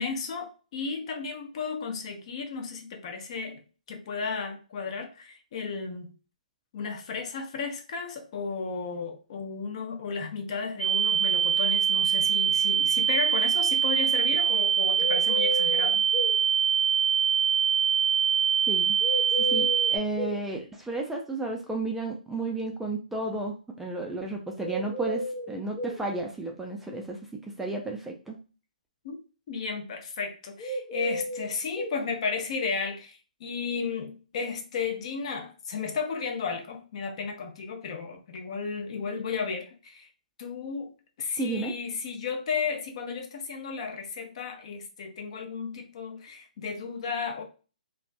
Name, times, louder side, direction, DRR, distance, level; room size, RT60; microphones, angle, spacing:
voice 1, 0.0-3.6 3.9-6.1 6.7-16.0 29.0-29.2 29.5-40.1 40.4-40.9 41.2-47.4, left 5 dB, 45° left, 0.6 m, -34 dB
sound 1, 10.8-20.0, right 8 dB, 85° right, 0.6 m, -24 dB
sound 2, 15.0-16.4 19.0-20.4 24.6-26.0 30.6-32.0, equal, 30° left, 0.9 m, -32 dB
voice 2, 18.7-28.4 41.4-41.7, right 2 dB, 5° right, 0.3 m, -33 dB
2.4 x 2.2 x 2.5 m
figure-of-eight pair, 135°, 4 cm